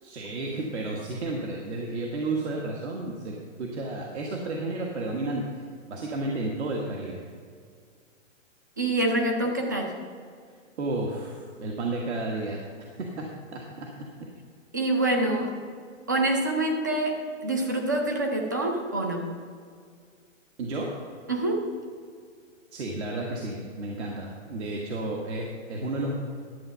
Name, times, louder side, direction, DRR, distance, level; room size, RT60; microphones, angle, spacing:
voice 1, 0.0-5.4 5.9-7.2 10.8-13.9 20.6-21.0 22.7-26.1, right 2 dB, 60° right, -1 dB, 1.6 m, -32 dB
voice 2, 8.8-9.9 14.7-15.5 16.1-19.2 21.3-21.6, right 2 dB, 15° right, 3 dB, 0.4 m, -26 dB
11.5 x 8.0 x 5.5 m, 2.1 s
hypercardioid pair, 165°, 39 cm